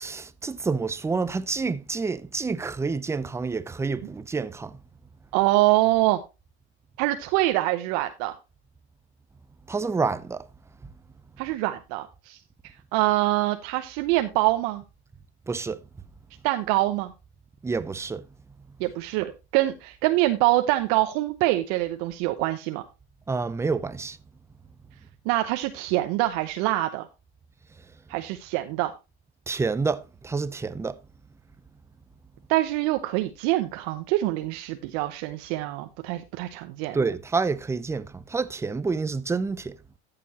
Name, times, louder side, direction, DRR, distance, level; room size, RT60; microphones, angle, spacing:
voice 1, 0.0-4.8 9.7-10.4 15.5-15.8 17.6-18.2 23.3-24.2 29.5-31.0 36.9-39.8, right 4 dB, 10° right, 0.5 m, -28 dB
voice 2, 5.3-6.2 7.0-8.4 11.4-12.4 12.9-14.8 16.4-17.1 18.8-22.8 25.2-27.1 28.1-28.9 32.5-37.0, right 17 dB, 55° right, 0.9 m, -25 dB
13.5 x 6.9 x 2.9 m
supercardioid pair, 110°, 33 cm